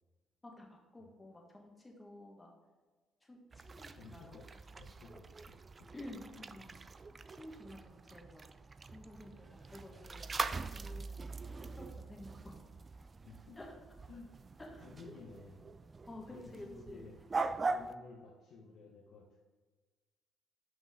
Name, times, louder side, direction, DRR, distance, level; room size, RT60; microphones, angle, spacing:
voice 1, 0.4-2.5 3.2-4.4 5.9-6.8 7.3-8.5 8.9-12.7 13.5-13.7 14.6-14.8 16.0-17.1, left 1 dB, 20° left, 0 dB, 1.6 m, -52 dB
sound 1, 3.5-17.9, right 3 dB, 35° right, 0.3 m, -43 dB
voice 2, 4.0-5.6 13.2-13.6 14.1-14.3 14.8-15.6 16.3-17.2 17.7-19.4, left 3 dB, 70° left, -4 dB, 1.0 m, -54 dB
5.7 x 5.4 x 3.8 m, 1.3 s
supercardioid pair, 70°, 0 cm